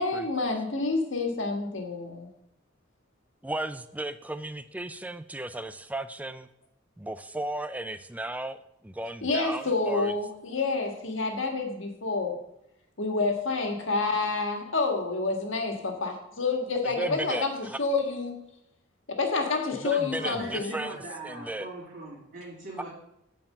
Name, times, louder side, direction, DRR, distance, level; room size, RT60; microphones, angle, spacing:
voice 1, 0.0-2.3 9.2-12.4 13.0-18.4 19.1-20.8, left 3 dB, 70° left, 3 dB, 1.7 m, -28 dB
voice 2, 3.4-6.5 7.0-10.1 16.9-17.8 19.8-21.7, right 1 dB, 5° right, 11 dB, 0.4 m, -35 dB
voice 3, 19.9-22.9, right 2 dB, 50° right, -10 dB, 3.4 m, -41 dB
9.2 x 4.6 x 7.6 m, 0.81 s
head